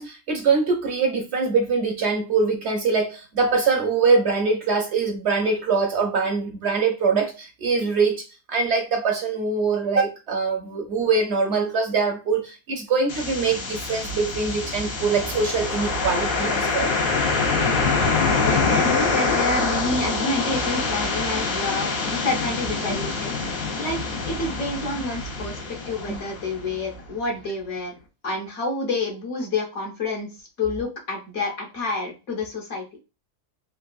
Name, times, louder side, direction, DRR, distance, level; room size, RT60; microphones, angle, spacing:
voice 1, 0.0-16.9 22.8-23.0 26.1-26.2, right 4 dB, 65° right, 0.7 m, -23 dB
sound 1, 13.1-27.0, left 4 dB, 90° left, 1.2 m, -25 dB
voice 2, 17.6-17.9 18.4-25.6 25.9-27.9 28.2-30.3 30.6-33.0, left 2 dB, 60° left, 1.3 m, -29 dB
3.6 x 2.3 x 2.3 m
omnidirectional pair, 1.4 m